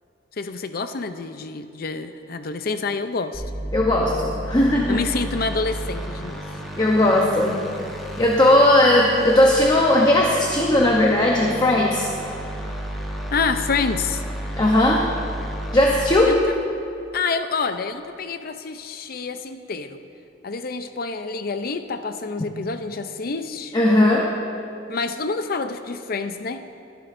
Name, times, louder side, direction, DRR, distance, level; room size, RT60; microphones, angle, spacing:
voice 1, 0.4-3.4 4.9-6.4 13.3-14.2 16.2-16.4 17.1-20.0 20.4-23.7 24.9-26.6, left 4 dB, 55° left, 9 dB, 0.6 m, -27 dB
sound 1, 3.3-16.1, right 1 dB, ahead, 1.5 m, -32 dB
voice 2, 3.7-5.0 6.8-7.7 8.2-12.1 14.6-15.0 15.7-16.4 23.7-24.3, left 1 dB, 25° left, -1 dB, 0.8 m, -17 dB
23.0 x 10.5 x 2.6 m, 2.6 s
head